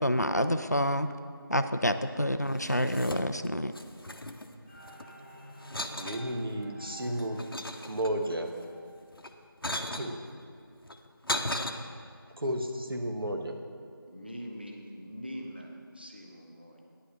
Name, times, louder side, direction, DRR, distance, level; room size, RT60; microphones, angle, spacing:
voice 1, 0.0-1.1 1.5-3.7, equal, 45° left, 10 dB, 0.4 m, -28 dB
sound 1, 2.5-3.5 3.7-5.1 5.6-6.3 6.8-8.4 9.1-10.1 10.8-11.7, left 1 dB, 70° left, 0.8 m, -36 dB
sound 2, 4.6-9.2, right 1 dB, 10° right, 2.0 m, -51 dB
voice 2, 6.0-7.4 7.9-8.5 9.9-10.2 12.4-13.6, equal, 75° right, 4 dB, 1.3 m, -32 dB
voice 3, 14.1-16.8, equal, 25° right, 1 dB, 0.7 m, -43 dB
10.0 x 5.7 x 6.6 m, 2.3 s
figure-of-eight pair, 180°, 12 cm